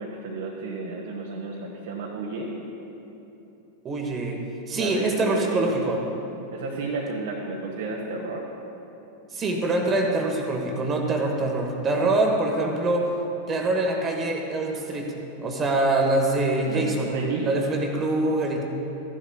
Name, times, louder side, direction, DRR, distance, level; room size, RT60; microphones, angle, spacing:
voice 1, 0.0-2.5 4.7-5.9 6.5-8.4 16.6-17.5, right 3 dB, 55° right, -2 dB, 1.1 m, -32 dB
voice 2, 3.8-4.4 4.7-6.0 9.3-13.1 13.5-15.1 15.4-17.1 17.4-18.6, right 2 dB, 25° right, 2 dB, 1.2 m, -24 dB
14.5 x 11.5 x 2.3 m, 3.0 s
figure-of-eight pair, 90°, 0 cm